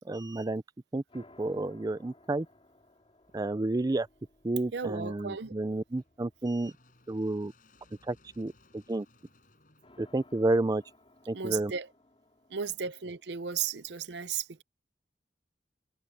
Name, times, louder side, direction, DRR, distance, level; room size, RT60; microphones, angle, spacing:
voice 1, 0.1-0.6 0.9-2.5 3.3-4.1 4.4-6.7 7.1-7.5 8.1-9.1 10.0-10.8 11.3-11.7, right 2 dB, 20° right, 0.4 m, -30 dB
sound 1, 1.1-7.4 9.8-14.0, left 2 dB, 30° left, 3.6 m, -61 dB
sound 2, 3.2-11.3, left 2 dB, 50° left, 5.7 m, -66 dB
voice 2, 4.7-5.5 11.3-11.9 12.5-14.6, right 7 dB, 70° right, 0.6 m, -35 dB
head